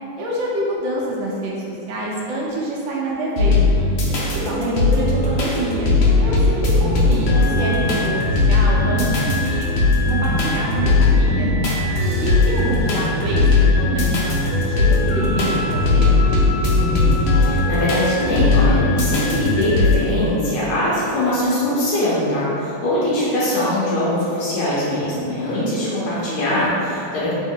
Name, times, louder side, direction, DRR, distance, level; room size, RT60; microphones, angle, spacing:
voice 1, 0.2-3.6 4.1-5.9 6.2-8.2 8.5-9.7 10.1-11.5 12.2-16.1, right 1 dB, 75° right, -4 dB, 1.3 m, -27 dB
sound 1, 3.4-20.0, left 2 dB, 75° left, 1.3 m, -18 dB
voice 2, 6.7-7.2 16.8-27.3, left 1 dB, 90° left, -8 dB, 1.6 m, -22 dB
3.5 x 3.1 x 3.7 m, 2.7 s
omnidirectional pair, 2.3 m